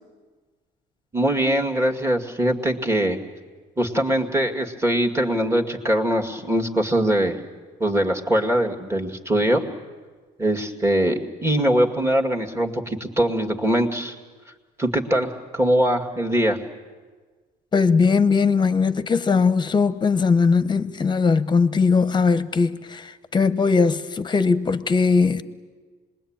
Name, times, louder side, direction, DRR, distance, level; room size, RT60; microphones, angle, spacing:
voice 1, 1.1-3.2 3.8-7.4 7.8-9.7 10.4-14.2 14.8-16.6, right 1 dB, 15° right, 2.2 m, -22 dB
voice 2, 17.7-25.4, left 5 dB, 25° left, 1.0 m, -20 dB
26.5 x 21.5 x 8.9 m
cardioid pair, 110°, 17 cm